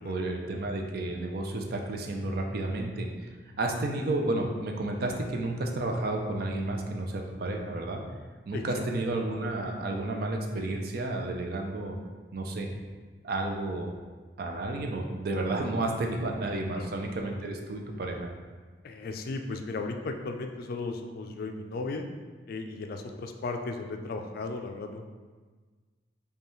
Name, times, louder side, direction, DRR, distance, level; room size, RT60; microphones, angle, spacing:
voice 1, 0.0-3.1 3.6-8.0 8.5-12.0 12.3-12.7 13.2-13.9 14.4-18.3, right 2 dB, 60° right, 2 dB, 0.5 m, -31 dB
voice 2, 8.5-8.8 16.7-16.9 18.8-22.0 22.5-25.0, left 3 dB, 55° left, 5 dB, 0.3 m, -35 dB
5.3 x 2.3 x 3.1 m, 1.4 s
head